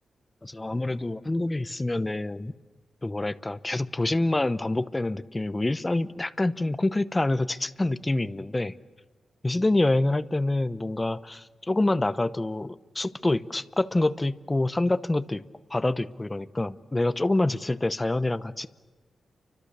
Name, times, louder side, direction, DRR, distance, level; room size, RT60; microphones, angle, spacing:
voice 1, 0.4-2.5 3.0-8.7 9.4-15.4 15.7-18.7, left 2 dB, 15° left, 14 dB, 0.8 m, -26 dB
30.0 x 25.0 x 6.8 m, 1.4 s
wide cardioid pair, 125°, 0 cm